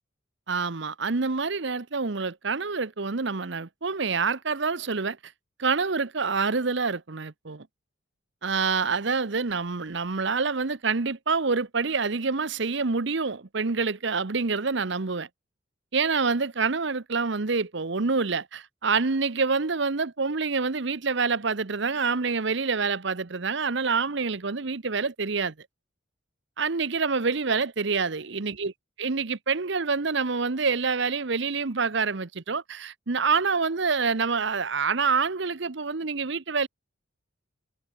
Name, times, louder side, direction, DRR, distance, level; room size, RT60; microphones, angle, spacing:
voice 1, 0.5-5.2 5.6-7.7 8.4-15.3 15.9-25.5 26.6-28.7 29.0-36.7, right 4 dB, 60° right, 0.9 m, -27 dB
head